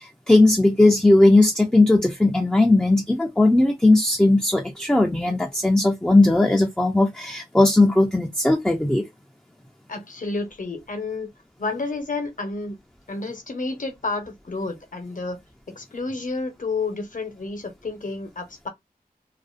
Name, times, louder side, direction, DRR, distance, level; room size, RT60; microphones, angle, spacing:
voice 1, 0.0-9.0, left 2 dB, 5° left, 0.4 m, -18 dB
voice 2, 9.9-11.3 11.6-12.8 13.1-15.4 15.7-18.7, left 3 dB, 60° left, 0.8 m, -30 dB
2.5 x 2.1 x 2.4 m
wide cardioid pair, 75°, 16 cm